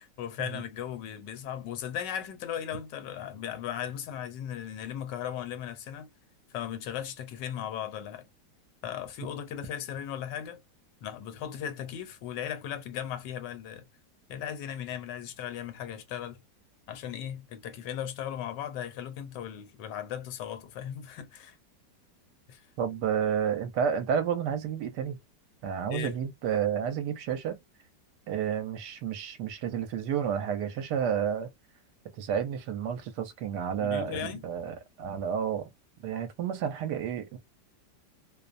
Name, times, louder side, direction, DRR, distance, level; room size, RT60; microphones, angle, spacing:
voice 1, 0.0-6.1 6.5-8.3 8.8-10.6 11.0-13.9 14.3-16.4 16.9-21.6 22.5-22.6 25.9-26.2 33.8-34.5, left 9 dB, 80° left, 1.3 m, -37 dB
voice 2, 22.8-25.2 25.6-27.6 28.3-31.5 32.2-35.7 36.0-37.4, right 8 dB, 75° right, 1.1 m, -31 dB
2.9 x 2.0 x 2.4 m
omnidirectional pair, 1.9 m